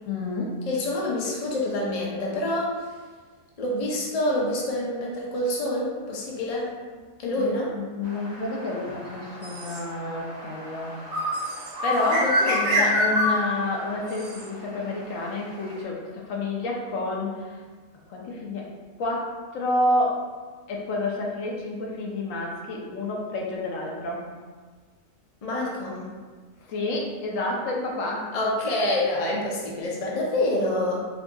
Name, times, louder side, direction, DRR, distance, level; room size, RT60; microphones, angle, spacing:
voice 1, 0.1-0.7 7.4-10.9 11.8-17.6 18.1-18.7 19.0-20.2 20.7-24.3 26.6-28.3, left 2 dB, 65° left, -2 dB, 1.0 m, -29 dB
voice 2, 0.7-2.9 3.6-6.7 7.2-7.7 12.2-12.9 25.4-26.1 28.3-31.1, left 1 dB, 50° left, -3 dB, 0.4 m, -27 dB
sound 1, 8.0-15.7, equal, 70° right, 1.2 m, -28 dB
5.1 x 2.7 x 2.3 m, 1.4 s
omnidirectional pair, 1.6 m